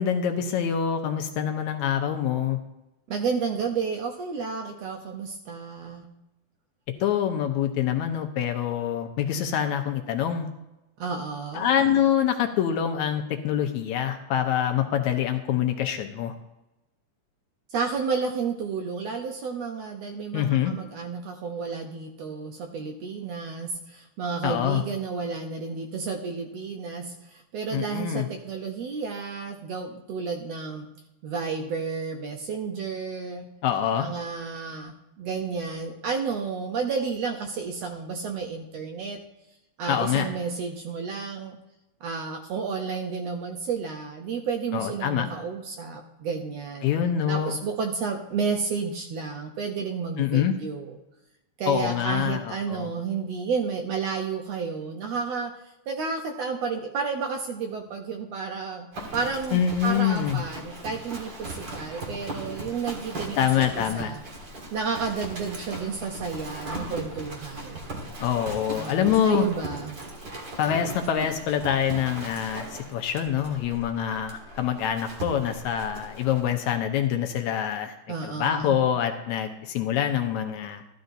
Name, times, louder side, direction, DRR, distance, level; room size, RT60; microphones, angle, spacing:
voice 1, 0.0-2.6 7.0-10.5 11.5-16.3 20.3-20.7 24.4-24.8 27.7-28.3 33.6-34.1 39.9-40.3 44.7-45.3 46.8-47.6 50.2-50.5 51.7-52.9 59.5-60.4 63.4-64.1 68.2-69.5 70.6-78.0 78.2-80.8, left 9 dB, 75° left, 5 dB, 1.9 m, -25 dB
voice 2, 3.1-6.1 11.0-11.7 17.7-30.9 31.2-33.5 34.0-39.2 39.8-41.6 42.0-46.9 47.3-51.0 51.6-55.5 55.9-58.9 59.1-64.2 64.7-67.8 68.7-70.0 78.1-78.8, right 5 dB, 70° right, 3 dB, 1.6 m, -31 dB
Livestock farm animals working animals, 58.9-76.5, right 2 dB, 45° right, 1.8 m, -38 dB
14.0 x 11.5 x 2.7 m, 0.94 s
omnidirectional pair, 3.6 m